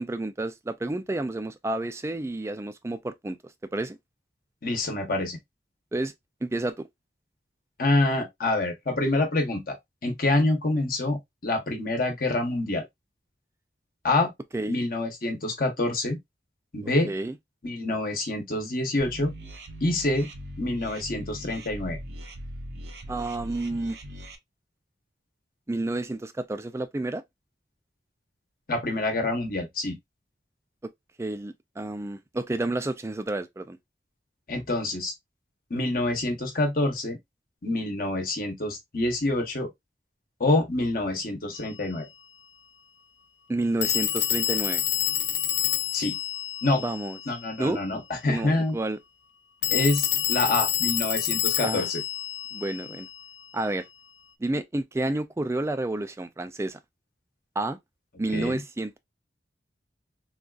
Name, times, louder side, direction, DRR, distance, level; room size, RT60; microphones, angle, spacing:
voice 1, 0.0-3.4 3.7-4.0 5.9-6.1 6.4-6.9 14.5-14.7 17.1-17.3 23.1-24.0 25.7-27.2 31.2-33.8 43.5-44.8 46.8-47.2 47.6-47.8 48.3-49.0 51.6-51.9 52.5-53.1 53.5-53.8 54.4-56.8 57.6-57.8 58.2-59.0, right 2 dB, 15° right, 0.3 m, -30 dB
voice 2, 4.6-5.4 7.8-9.8 10.0-12.8 14.0-14.3 14.7-16.2 16.7-17.1 17.6-19.3 19.8-20.3 20.6-22.0 28.7-30.0 34.5-35.1 35.7-37.2 37.6-39.7 40.4-42.1 45.9-46.2 46.6-46.8 47.3-48.8 49.7-52.0 58.3-58.6, left 2 dB, 50° left, 1.0 m, -26 dB
sound 1, 19.0-24.4, equal, 65° right, 0.6 m, -40 dB
Telephone, 41.6-41.7 43.8-47.5 49.6-53.3, left 13 dB, 70° left, 0.5 m, -28 dB
3.7 x 2.4 x 2.3 m
head